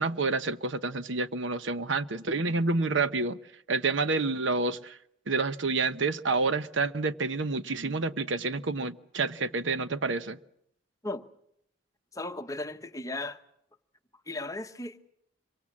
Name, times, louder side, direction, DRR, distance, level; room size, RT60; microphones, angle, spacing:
voice 1, 0.0-3.4 3.7-5.0 5.3-10.4, right 3 dB, 70° right, 0.9 m, -28 dB
voice 2, 12.1-13.4 14.3-15.1, left 2 dB, 15° left, 1.0 m, -36 dB
25.5 x 24.0 x 7.3 m
head